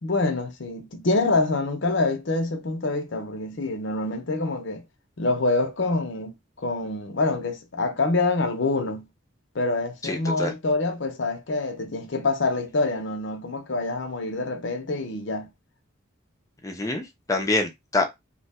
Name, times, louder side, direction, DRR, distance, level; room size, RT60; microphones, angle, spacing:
voice 1, 0.0-4.8 5.2-9.1 9.5-15.5, left 3 dB, 60° left, 0.7 m, -26 dB
voice 2, 10.0-10.5 16.6-18.1, left 2 dB, 15° left, 0.5 m, -26 dB
2.8 x 2.2 x 4.1 m
head